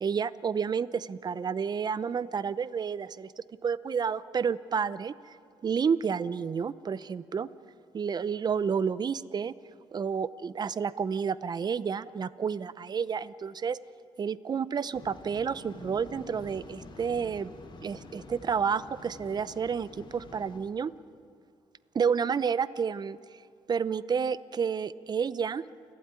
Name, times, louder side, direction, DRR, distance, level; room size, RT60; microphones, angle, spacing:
voice 1, 0.0-3.3 3.6-5.4 5.6-7.5 7.9-9.5 9.9-13.8 14.2-17.5 17.8-20.9 21.9-23.2 23.7-25.6, right 6 dB, 40° right, 17 dB, 0.7 m, -30 dB
Waves surf, 14.9-20.6, left 2 dB, 45° left, 2.9 m, -48 dB
29.0 x 12.5 x 9.7 m, 2.3 s
cardioid pair, 95°, 11 cm